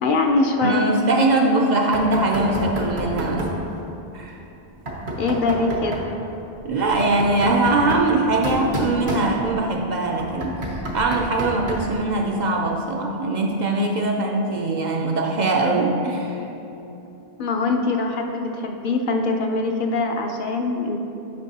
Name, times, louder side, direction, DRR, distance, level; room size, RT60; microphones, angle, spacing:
voice 1, 0.0-0.9 5.2-6.0 17.4-21.0, left 3 dB, 60° left, 3 dB, 0.7 m, -22 dB
voice 2, 0.6-3.5 4.1-4.4 6.6-10.6 10.9-16.5, right 2 dB, 55° right, 1 dB, 0.5 m, -21 dB
Knock, 1.9-3.6 4.9-6.1 6.8-9.7 10.2-12.0, right 1 dB, 85° right, 1.3 m, -29 dB
9.7 x 5.3 x 2.8 m, 2.9 s
omnidirectional pair, 1.0 m